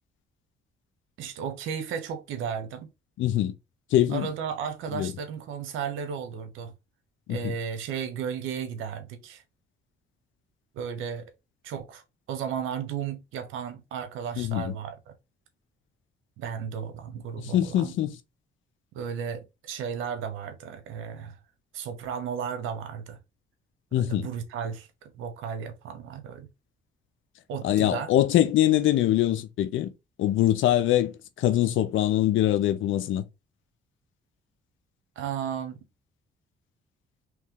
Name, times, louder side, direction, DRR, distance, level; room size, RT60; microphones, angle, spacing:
voice 1, 1.2-2.9 4.1-6.7 7.3-9.4 10.7-11.3 11.6-12.0 12.3-15.1 16.4-17.9 18.9-21.4 21.7-23.2 23.9-26.5 27.5-28.1 35.2-35.8, right 7 dB, 90° right, 0.9 m, -34 dB
voice 2, 3.2-3.5 3.9-4.3 4.9-5.1 7.3-7.5 14.4-14.8 17.4-18.2 23.9-24.3 27.6-29.9 30.2-33.2, left 13 dB, 80° left, 0.6 m, -23 dB
3.2 x 3.1 x 3.7 m
cardioid pair, 90°, 20 cm